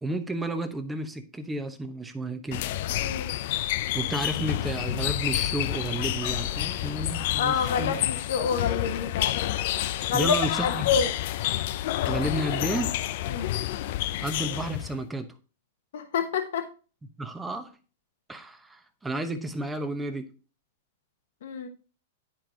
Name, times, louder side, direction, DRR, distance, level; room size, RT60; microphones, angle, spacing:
voice 1, 0.0-2.6 3.9-8.0 10.1-10.9 12.1-12.9 14.2-15.3 17.2-17.7 18.3-20.3, right 1 dB, 10° right, 8 dB, 0.9 m, -32 dB
sound 1, 2.5-15.0, left 13 dB, 55° left, 0.4 m, -29 dB
voice 2, 3.0-3.3 7.3-9.3 10.1-10.4 10.6-11.1 13.3-13.5 15.9-16.7 21.4-21.7, left 6 dB, 75° left, 6 dB, 1.0 m, -27 dB
10.0 x 4.6 x 3.8 m, 0.35 s
supercardioid pair, 150°, 0 cm